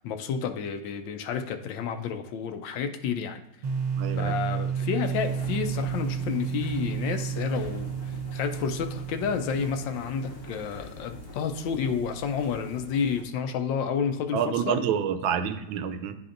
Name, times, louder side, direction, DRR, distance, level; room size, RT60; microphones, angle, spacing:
voice 1, 0.0-3.4 4.1-14.8, left 6 dB, 75° left, 7 dB, 1.3 m, -30 dB
sound 1, 3.6-10.4, right 7 dB, 55° right, 1.2 m, -31 dB
voice 2, 4.0-4.3 14.3-16.2, right 8 dB, 85° right, 9 dB, 1.4 m, -28 dB
sound 2, 5.0-13.2, left 2 dB, 55° left, 0.6 m, -44 dB
10.5 x 4.2 x 2.5 m, 0.98 s
omnidirectional pair, 2.1 m